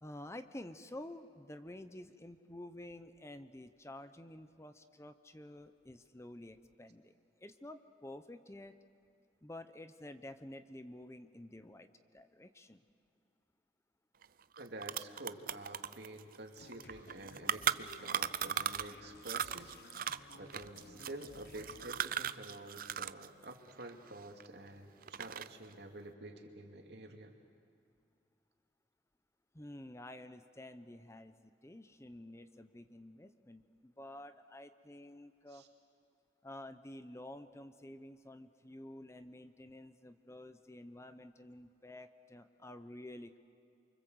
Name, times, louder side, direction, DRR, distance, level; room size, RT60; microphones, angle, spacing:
voice 1, 0.0-8.7 9.4-12.8 29.5-35.6 36.4-43.4, left 1 dB, 15° left, 10 dB, 0.8 m, -50 dB
sound 1, 14.2-14.3 14.6-19.0 19.2-23.3 23.5-24.7 25.0-25.7, right 8 dB, 55° right, 0.6 m, -37 dB
voice 2, 14.6-19.7 20.3-27.3 35.5-35.7, right 1 dB, 70° right, 4 dB, 2.6 m, -49 dB
sound 2, 16.6-21.9, left 2 dB, 60° left, 1.1 m, -57 dB
28.5 x 25.0 x 8.0 m, 2.5 s
head